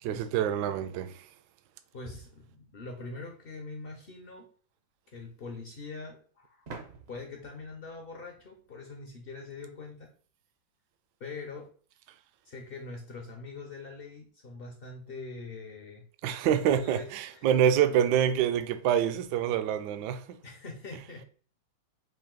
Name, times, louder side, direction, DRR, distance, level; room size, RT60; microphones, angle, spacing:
voice 1, 0.0-1.2 16.2-20.4, right 9 dB, 75° right, 1.0 m, -26 dB
voice 2, 1.9-4.5 5.1-6.7 7.1-10.1 11.2-11.7 12.4-16.0 16.5-17.5 20.4-21.2, left 3 dB, 65° left, 0.5 m, -43 dB
sound 1, 6.7-9.3, right 4 dB, 55° right, 0.7 m, -49 dB
5.2 x 2.7 x 3.7 m
omnidirectional pair, 2.1 m